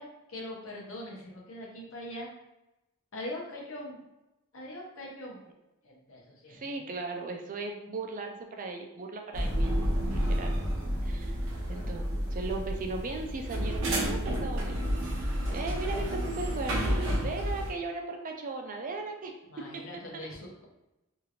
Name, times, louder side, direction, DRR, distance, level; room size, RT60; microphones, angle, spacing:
voice 1, 0.0-2.3 3.1-4.0 4.5-5.4 5.8-6.8 17.2-17.6 19.4-20.6, left 1 dB, 70° left, -3 dB, 0.9 m, -42 dB
voice 2, 6.5-10.5 11.0-11.4 11.7-14.8 15.1-19.3 19.7-19.8, right 3 dB, 40° right, 3 dB, 0.4 m, -37 dB
sound 1, 9.3-17.7, equal, 65° right, 0.7 m, -30 dB
2.8 x 2.5 x 2.8 m, 0.96 s
head